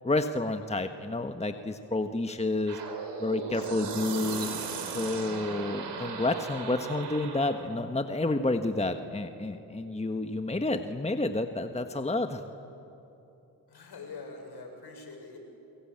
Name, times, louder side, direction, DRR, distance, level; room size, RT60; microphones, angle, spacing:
voice 1, 0.0-2.8 3.2-4.5 4.9-12.4, left 2 dB, 15° left, 7 dB, 1.5 m, -30 dB
sound 1, 2.7-7.7, right 5 dB, 80° right, 3.9 m, -37 dB
voice 2, 13.7-15.4, left 3 dB, 70° left, 2 dB, 6.8 m, -44 dB
27.0 x 23.5 x 8.9 m, 2.9 s
supercardioid pair, 55°, 41 cm